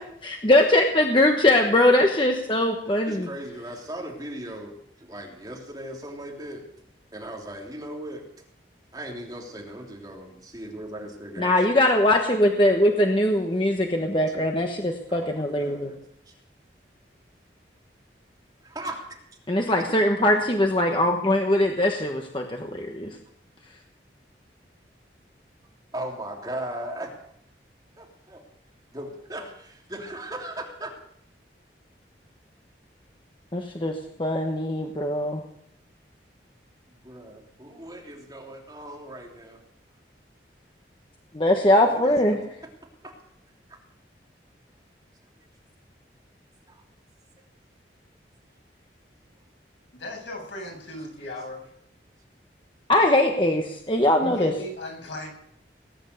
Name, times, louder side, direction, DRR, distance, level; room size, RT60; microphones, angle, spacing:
voice 1, 0.2-3.3 11.4-15.9 19.5-23.2 33.5-35.4 41.3-42.4 52.9-54.5, left 1 dB, 25° left, 3 dB, 1.2 m, -21 dB
voice 2, 3.1-4.7 5.0-6.6 7.1-8.2 8.9-11.5 14.0-14.7 15.1-16.0 16.2-16.3 18.6-19.2 19.8-19.9 25.9-27.2 28.0-28.4 28.9-30.9 37.0-39.6 41.8-42.2 43.0-43.1 46.7-46.8, right 1 dB, 20° right, -1 dB, 3.2 m, -38 dB
voice 3, 49.9-51.7 54.2-55.3, left 1 dB, 85° left, 0 dB, 7.7 m, -36 dB
19.5 x 10.0 x 6.8 m, 0.72 s
head